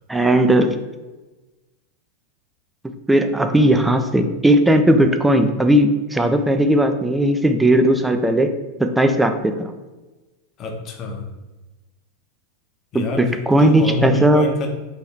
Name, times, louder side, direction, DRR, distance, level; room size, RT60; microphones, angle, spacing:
voice 1, 0.1-0.7 3.1-8.5 8.8-9.7 12.9-14.5, right 1 dB, 5° right, 7 dB, 0.3 m, -17 dB
voice 2, 10.6-11.3 12.9-14.7, left 3 dB, 30° left, 2 dB, 0.7 m, -26 dB
3.2 x 2.7 x 4.3 m, 1.2 s
figure-of-eight pair, 90°, 0 cm